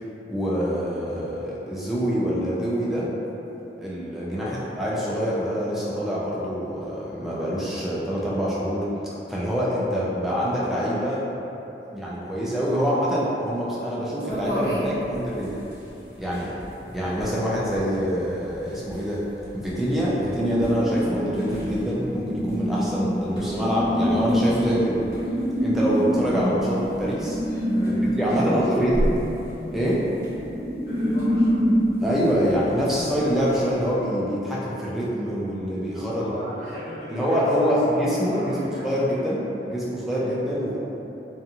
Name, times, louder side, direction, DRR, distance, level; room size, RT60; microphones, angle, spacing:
voice 1, 0.3-3.1 3.8-11.2 11.9-15.6 16.2-16.6 16.9-19.2 19.5-25.1 25.6-27.4 27.9-29.1 29.7-30.1 32.0-36.3 37.1-40.8, equal, ahead, -8 dB, 0.3 m, -25 dB
sound 1, 14.3-33.9, equal, 15° left, 0.8 m, -37 dB
sound 2, 20.4-31.9, equal, 45° right, 1.2 m, -26 dB
voice 2, 27.7-28.8 30.8-31.7 36.2-39.3, equal, 55° left, -14 dB, 0.7 m, -38 dB
2.8 x 2.3 x 2.5 m, 3.0 s
head